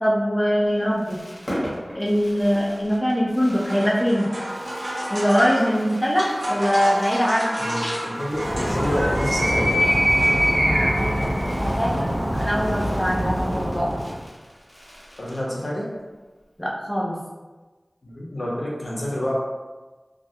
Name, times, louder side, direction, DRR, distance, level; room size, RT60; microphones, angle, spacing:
voice 1, 0.0-1.2 1.9-4.3 5.1-7.6 10.8-11.2 11.6-12.1 12.4-13.9 16.6-17.2, equal, 15° left, -5 dB, 0.5 m, -22 dB
Fireworks, 0.6-15.8 16.1-16.2 16.4-16.7, equal, 40° left, 1.1 m, -41 dB
sound 1, 3.3-10.9, equal, 90° right, 0.7 m, -32 dB
voice 2, 7.6-9.7 15.2-15.9 18.0-19.3, equal, 75° left, -4 dB, 0.6 m, -28 dB
Animal, 8.3-14.2, equal, 50° right, 0.6 m, -23 dB
2.2 x 2.1 x 2.7 m, 1.2 s
wide cardioid pair, 55°, 0 cm